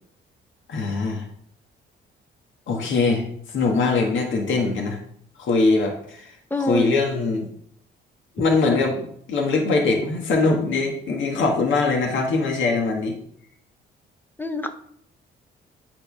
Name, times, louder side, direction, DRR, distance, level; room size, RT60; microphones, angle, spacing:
voice 1, 0.7-1.2 2.7-3.3 3.5-5.0 5.4-7.5 8.4-13.2, left 3 dB, 70° left, 1 dB, 1.8 m, -22 dB
voice 2, 6.5-6.9 14.4-14.7, left 1 dB, 10° left, 8 dB, 1.0 m, -25 dB
8.6 x 4.2 x 5.4 m, 0.65 s
cardioid pair, 90°, 20 cm